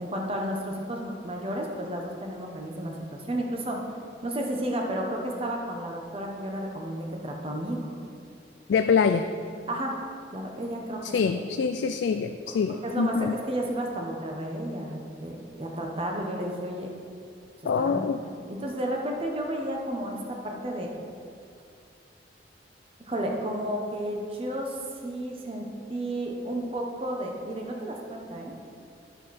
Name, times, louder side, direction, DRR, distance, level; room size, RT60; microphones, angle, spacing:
voice 1, 0.0-3.8 4.2-7.9 9.7-9.9 10.3-11.4 12.8-16.9 17.8-18.1 18.5-20.9 23.1-28.5, right 1 dB, 30° right, 1 dB, 1.0 m, -32 dB
voice 2, 8.7-9.3 11.1-13.3 17.6-18.2, left 5 dB, 80° left, 7 dB, 0.3 m, -25 dB
11.0 x 6.5 x 4.2 m, 2.4 s
head